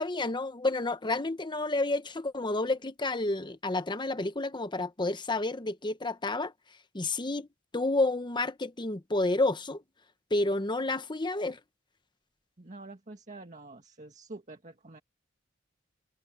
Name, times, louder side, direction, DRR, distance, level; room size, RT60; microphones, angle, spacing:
voice 1, 0.0-6.5 6.9-7.5 7.7-9.8 10.3-11.6, left 2 dB, 25° left, 1.0 m, -30 dB
voice 2, 12.6-15.0, right 2 dB, 40° right, 1.8 m, -47 dB
open air
head